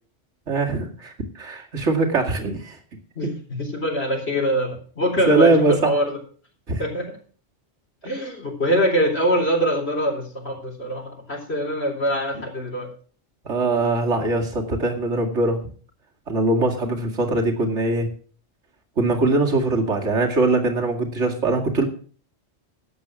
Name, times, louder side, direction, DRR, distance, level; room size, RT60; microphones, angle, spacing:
voice 1, 0.5-2.8 3.2-3.3 5.3-5.9 6.7-6.8 13.4-15.6 16.3-18.1 19.0-21.9, right 2 dB, 70° right, 2 dB, 2.5 m, -21 dB
voice 2, 3.2-6.0 6.8-7.1 8.0-12.9, equal, 60° left, 0 dB, 4.0 m, -23 dB
12.5 x 8.3 x 6.1 m, 0.43 s
omnidirectional pair, 1.2 m